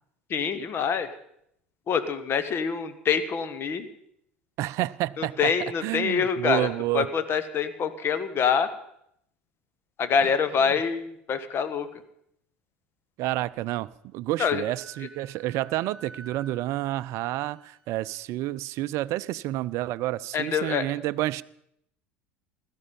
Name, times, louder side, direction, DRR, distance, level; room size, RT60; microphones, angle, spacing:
voice 1, 0.3-1.1 1.9-3.9 5.2-8.7 10.0-11.9 14.4-14.6 20.3-20.8, left 6 dB, 40° left, 13 dB, 1.5 m, -26 dB
voice 2, 4.6-5.5 5.8-7.1 10.7-10.8 13.2-21.4, right 16 dB, 55° right, 17 dB, 0.5 m, -29 dB
Wind instrument woodwind instrument, 14.7-18.2, right 3 dB, 20° left, 7.1 m, -50 dB
16.5 x 13.0 x 5.5 m, 0.73 s
hypercardioid pair, 75°, 6 cm